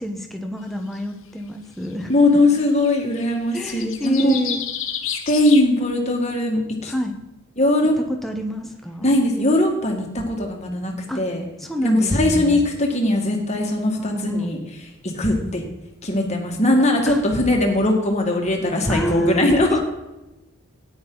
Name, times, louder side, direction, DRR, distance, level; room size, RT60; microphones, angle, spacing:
voice 1, 0.0-2.4 3.5-4.7 6.9-7.1 8.0-9.1 11.1-11.2 11.6-12.6 14.0-14.5 17.1-17.2 18.9-19.8, equal, ahead, 3 dB, 1.1 m, -28 dB
sound 1, 0.9-1.0 2.1-2.2 2.4-5.6, left 9 dB, 60° left, 1.0 m, -30 dB
voice 2, 2.1-4.4 5.3-6.9 7.6-7.9 9.0-11.4 11.8-14.6 15.0-15.6 16.0-19.8, left 1 dB, 30° left, 2 dB, 1.9 m, -20 dB
13.5 x 9.7 x 3.9 m, 0.98 s
head